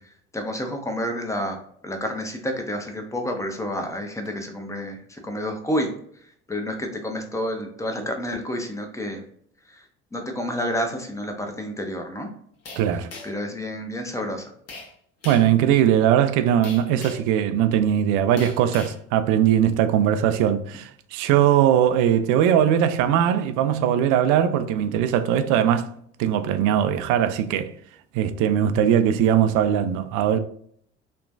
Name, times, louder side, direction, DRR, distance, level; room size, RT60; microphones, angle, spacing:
voice 1, 0.3-1.6 1.8-5.9 6.5-9.2 9.7-9.8 10.1-12.3 13.2-14.5, equal, 10° left, 0.7 m, -29 dB
sound 1, 12.7-13.5 14.7-14.9 15.2-15.5 16.6-17.3 18.4-19.0, left 3 dB, 45° left, 1.0 m, -39 dB
voice 2, 12.8-13.1 15.2-25.9 26.2-27.7 28.1-30.4, right 10 dB, 65° right, 0.5 m, -20 dB
3.1 x 2.1 x 2.5 m
hypercardioid pair, 65°, 34 cm